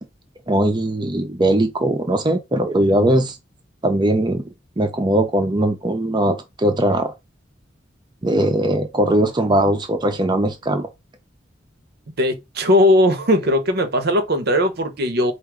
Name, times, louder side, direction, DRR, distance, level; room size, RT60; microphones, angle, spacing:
voice 1, 0.5-3.4 3.8-4.4 4.8-7.1 8.2-10.9, right 1 dB, 25° right, 0.6 m, -19 dB
voice 2, 12.2-15.3, left 1 dB, 55° right, 0.7 m, -18 dB
4.6 x 2.6 x 3.6 m
head